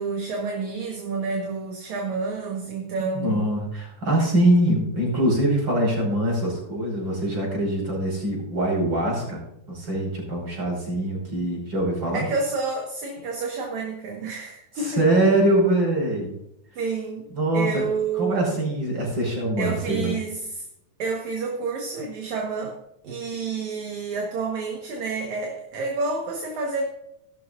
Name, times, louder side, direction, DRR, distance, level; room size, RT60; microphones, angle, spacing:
voice 1, 0.0-3.5 12.1-15.2 16.8-17.3 17.5-18.6 19.6-20.7 21.0-22.8 23.0-26.9, right 4 dB, 60° right, 1 dB, 2.7 m, -29 dB
voice 2, 3.0-9.4 9.7-12.3 14.8-16.3 17.3-17.7 18.2-20.1, right 1 dB, 30° right, -1 dB, 5.9 m, -23 dB
16.5 x 12.5 x 2.6 m, 0.80 s
omnidirectional pair, 3.9 m